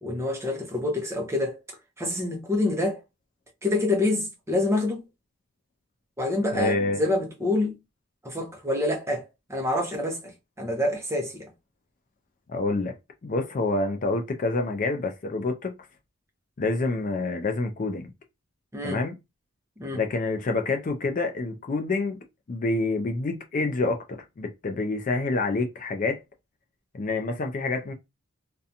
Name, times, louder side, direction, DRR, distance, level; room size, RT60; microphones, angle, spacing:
voice 1, 0.0-1.6 2.0-3.0 3.6-5.0 6.2-7.7 8.2-10.3 10.6-11.5 18.7-19.0 19.8-20.0, left 2 dB, 10° right, 0.6 m, -27 dB
voice 2, 6.5-7.0 12.5-12.9 13.2-15.7 16.6-18.0 18.8-19.2 19.9-22.2 22.5-26.2 26.9-27.9, left 3 dB, 35° left, 0.3 m, -27 dB
2.5 x 2.2 x 2.7 m
head